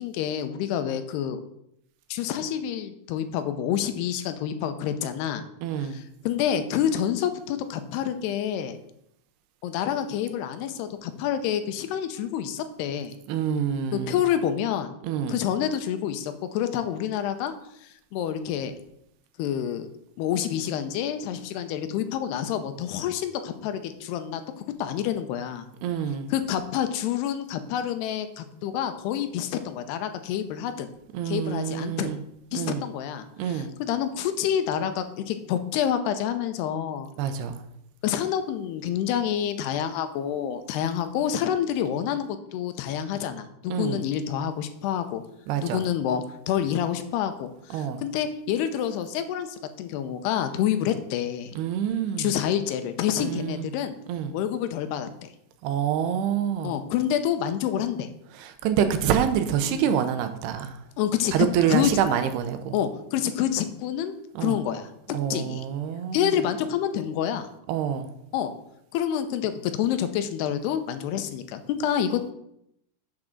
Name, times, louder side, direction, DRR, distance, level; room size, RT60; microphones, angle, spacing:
voice 1, 0.0-1.4 2.1-5.4 5.8-8.8 9.6-13.1 13.9-14.9 15.3-17.5 18.1-18.7 19.4-19.9 20.2-25.7 26.3-30.9 31.3-32.1 32.5-37.1 38.0-45.2 45.6-51.5 52.2-54.0 54.3-55.3 56.6-58.1 59.7-59.9 61.0-61.9 62.7-64.1 64.4-65.7 66.1-67.5 68.3-68.5 68.9-72.3, left 9 dB, 85° left, 9 dB, 2.8 m, -28 dB
voice 2, 5.6-6.0 13.3-14.2 15.0-15.3 25.8-26.3 31.1-32.2 32.5-32.8 33.4-33.7 37.2-37.6 43.7-44.0 45.5-45.8 47.7-48.0 51.6-52.3 53.2-53.7 54.1-54.3 55.6-56.8 58.4-60.8 61.3-62.8 64.4-64.6 65.1-66.4 67.7-68.1, right 9 dB, 85° right, 9 dB, 2.8 m, -26 dB
7.4 x 6.1 x 6.5 m, 0.77 s
omnidirectional pair, 4.7 m